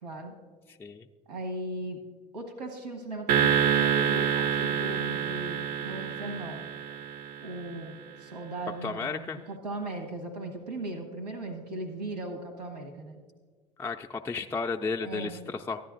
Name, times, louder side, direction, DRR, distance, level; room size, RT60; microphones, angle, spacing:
voice 1, 0.0-0.3 1.3-2.0 2.3-6.6 7.4-13.2 15.0-15.4, right 2 dB, 85° right, 4 dB, 1.2 m, -38 dB
sound 1, 3.3-7.8, right 8 dB, 50° right, 0.5 m, -27 dB
voice 2, 8.8-9.4 13.8-15.8, left 4 dB, 10° left, 3 dB, 0.4 m, -33 dB
13.5 x 10.0 x 2.5 m, 1.5 s
hypercardioid pair, 65°, 20 cm